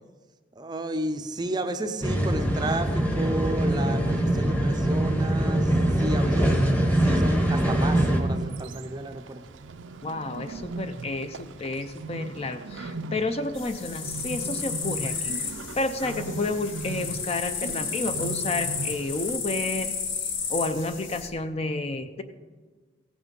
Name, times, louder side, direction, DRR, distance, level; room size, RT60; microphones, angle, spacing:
voice 1, 0.6-6.5 7.0-9.4, right 2 dB, 20° right, 8 dB, 0.5 m, -32 dB
sound 1, 2.0-8.2, right 1 dB, 10° left, 1.0 m, -23 dB
Bird, 7.2-19.4, right 3 dB, 85° right, 0.5 m, -38 dB
voice 2, 10.0-15.3 15.7-19.9 20.5-22.2, left 2 dB, 30° left, 9 dB, 0.5 m, -30 dB
sound 2, 13.5-21.3, left 6 dB, 80° left, 1.2 m, -33 dB
16.0 x 6.2 x 5.2 m, 1.4 s
head